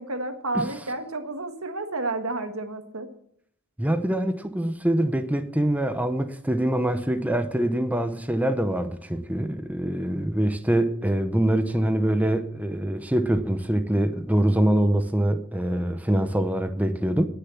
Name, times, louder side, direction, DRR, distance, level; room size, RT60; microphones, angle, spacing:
voice 1, 0.0-3.1, right 2 dB, 70° right, 1.7 m, -31 dB
voice 2, 3.8-17.3, right 1 dB, 5° right, 0.8 m, -24 dB
19.5 x 6.9 x 7.2 m
head